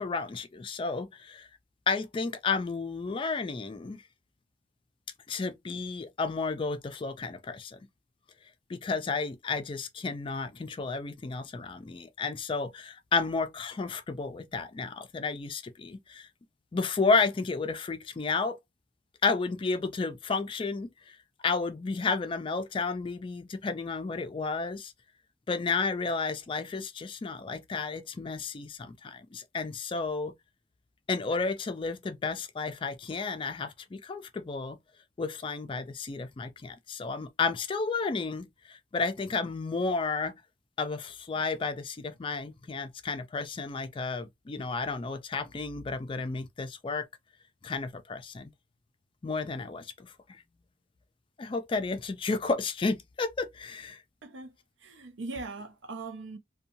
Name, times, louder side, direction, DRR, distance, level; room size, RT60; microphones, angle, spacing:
voice 1, 0.0-1.5 1.9-4.0 5.3-7.8 8.7-16.3 16.7-18.6 19.2-20.9 21.4-24.9 25.5-30.3 31.1-34.8 35.2-40.3 40.8-47.1 47.6-48.5 49.2-50.1 51.4-54.0, left 4 dB, 30° left, 0.3 m, -32 dB
voice 2, 54.2-54.5 54.8-56.4, right 3 dB, 85° right, 0.5 m, -40 dB
2.6 x 2.2 x 2.7 m
head